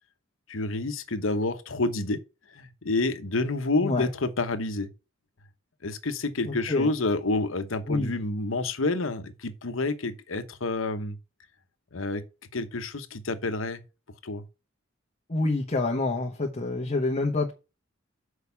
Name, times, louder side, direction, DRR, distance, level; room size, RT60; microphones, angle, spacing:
voice 1, 0.5-2.2 2.5-4.9 5.8-11.2 11.9-12.2 12.5-13.8 14.2-14.4, left 2 dB, 80° left, 1.0 m, -29 dB
voice 2, 6.5-6.9 7.9-8.1 15.3-17.5, left 2 dB, 35° left, 1.2 m, -27 dB
6.5 x 4.8 x 6.9 m
head